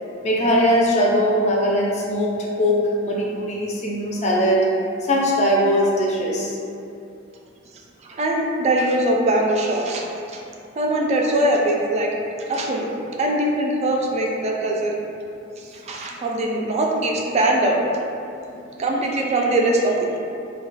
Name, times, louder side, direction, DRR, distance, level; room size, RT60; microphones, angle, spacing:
voice 1, 0.2-4.7 5.0-6.6 18.6-18.8, equal, 35° left, -3 dB, 0.5 m, -20 dB
voice 2, 8.1-10.1 10.3-10.4 10.8-12.1 12.4-12.9 13.2-15.0 15.6-17.8 18.8-20.2, right 1 dB, 35° right, 0 dB, 0.3 m, -21 dB
2.2 x 2.2 x 3.9 m, 2.6 s
head